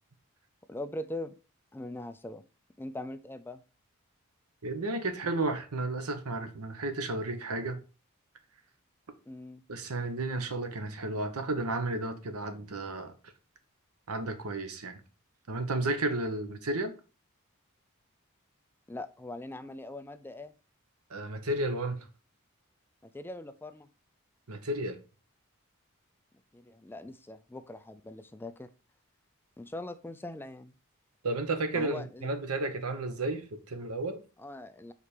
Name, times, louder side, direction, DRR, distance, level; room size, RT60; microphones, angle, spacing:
voice 1, 0.7-1.3 1.7-2.4 2.8-3.6 9.3-9.6 18.9-20.5 23.0-23.9 26.5-28.7 29.6-30.7 31.7-32.3 34.4-34.9, left 1 dB, 10° left, 0.3 m, -41 dB
voice 2, 4.6-7.8 9.7-13.1 14.1-15.0 15.5-16.9 21.1-22.1 24.5-25.0 31.2-34.2, right 2 dB, 90° right, 1.0 m, -32 dB
5.0 x 4.2 x 4.9 m
head